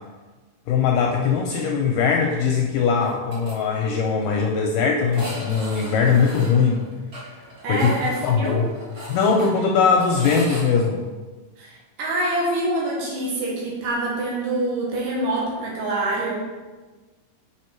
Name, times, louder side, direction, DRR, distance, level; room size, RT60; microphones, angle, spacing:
voice 1, 0.7-6.8 7.2-7.3 7.7-8.6 9.1-11.0, left 5 dB, 80° left, 1 dB, 2.0 m, -20 dB
sound 1, 3.0-3.5 3.8-3.9 4.2-4.3 5.1-10.6, equal, 35° right, 1.5 m, -37 dB
voice 2, 7.6-8.7 11.6-16.4, right 1 dB, 65° right, -4 dB, 2.8 m, -25 dB
6.7 x 4.8 x 4.5 m, 1.3 s
omnidirectional pair, 4.3 m